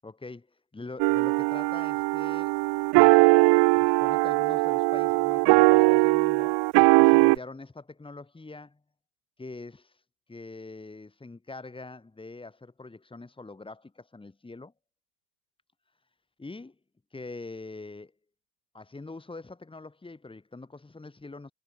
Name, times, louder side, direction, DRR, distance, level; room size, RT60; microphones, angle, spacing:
voice 1, 0.0-2.6 3.7-6.6 7.0-8.8 9.4-10.0 10.3-14.7 16.4-16.8 17.1-18.1 18.7-21.5, left 3 dB, 10° left, 7.5 m, -43 dB
sound 1, 1.0-7.3, right 28 dB, 55° right, 2.6 m, -20 dB
hypercardioid pair, 95°, 47 cm